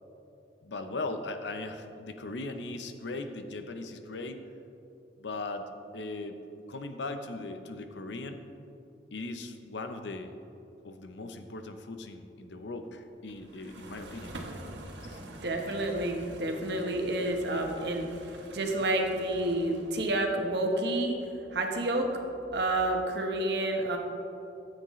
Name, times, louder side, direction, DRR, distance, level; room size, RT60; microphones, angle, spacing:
voice 1, 0.6-4.4 5.2-6.4 6.7-8.4 9.1-10.3 10.8-14.3 15.0-15.2, left 2 dB, 85° left, 7 dB, 0.7 m, -39 dB
sound 1, 13.3-20.3, right 1 dB, 85° right, 1.2 m, -47 dB
voice 2, 15.0-21.1 21.5-22.1 22.5-24.0, right 1 dB, 70° right, 2 dB, 1.1 m, -29 dB
13.5 x 8.0 x 3.2 m, 2.9 s
head